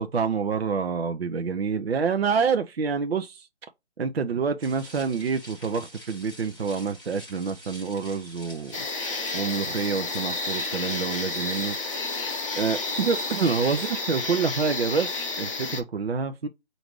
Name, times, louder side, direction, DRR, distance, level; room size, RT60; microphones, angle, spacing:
voice 1, 0.0-3.5 4.0-8.8 9.3-11.8 12.6-16.5, right 5 dB, 65° right, 0.6 m, -27 dB
sound 1, 4.6-13.9, left 1 dB, ahead, 0.8 m, -47 dB
sound 2, 8.7-15.8, left 3 dB, 30° left, 0.9 m, -31 dB
4.9 x 2.6 x 3.0 m
figure-of-eight pair, 155°, 34 cm